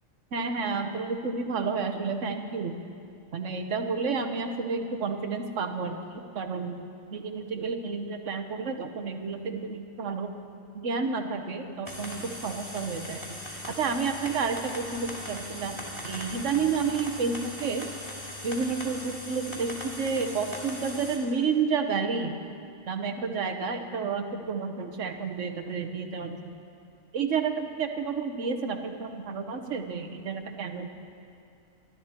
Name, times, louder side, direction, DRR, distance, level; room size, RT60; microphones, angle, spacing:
voice 1, 0.3-2.8 3.3-6.8 7.1-10.4 10.7-13.4 13.8-17.9 18.4-22.3 22.9-26.5 27.1-30.9, right 5 dB, 65° right, 6 dB, 1.4 m, -30 dB
sound 1, 11.9-21.2, left 1 dB, 20° left, 2.7 m, -39 dB
25.5 x 12.5 x 4.4 m, 2.4 s
omnidirectional pair, 1.4 m